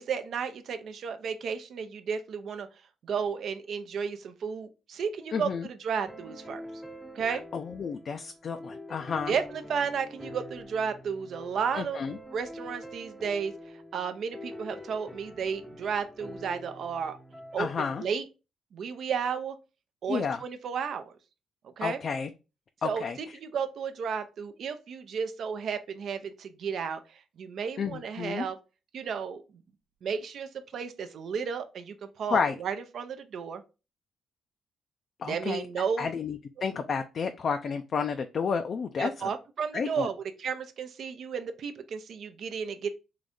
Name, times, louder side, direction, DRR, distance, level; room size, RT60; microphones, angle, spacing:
voice 1, 0.0-2.7 3.0-6.6 7.1-7.4 9.3-12.0 12.3-13.5 13.9-17.2 17.5-18.2 18.7-19.6 20.0-21.1 21.6-22.0 22.8-28.6 28.9-29.4 30.0-33.6 35.3-36.1 39.0-42.9, right 6 dB, 65° right, 9 dB, 0.5 m, -33 dB
voice 2, 5.3-5.7 7.3-9.3 11.7-12.2 17.6-18.0 20.1-20.4 21.8-22.3 22.8-23.4 27.8-28.5 32.3-32.6 35.2-35.7 36.0-39.3 39.7-40.1, left 6 dB, 50° left, 6 dB, 0.4 m, -31 dB
sound 1, 6.1-18.1, left 1 dB, ahead, 0.6 m, -45 dB
3.8 x 2.6 x 3.4 m, 0.30 s
cardioid pair, 90°, 0 cm